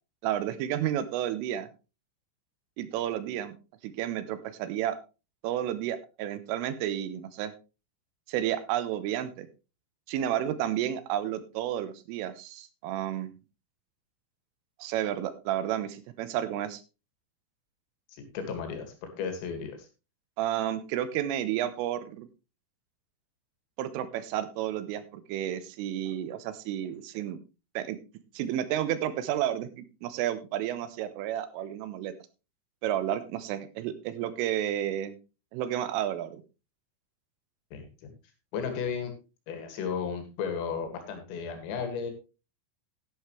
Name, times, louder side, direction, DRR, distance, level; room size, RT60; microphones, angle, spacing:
voice 1, 0.2-1.7 2.8-3.5 3.8-5.0 5.4-7.5 8.3-9.5 10.1-13.3 14.8-16.8 20.4-22.3 23.8-27.4 27.8-28.0 28.4-32.1 32.8-35.2 35.5-36.4, right 11 dB, 85° right, 13 dB, 3.4 m, -31 dB
voice 2, 18.1-19.8 37.7-38.1 38.5-39.1 39.5-42.1, left 6 dB, 80° left, 6 dB, 4.8 m, -34 dB
11.5 x 11.5 x 3.2 m, 0.30 s
omnidirectional pair, 5.9 m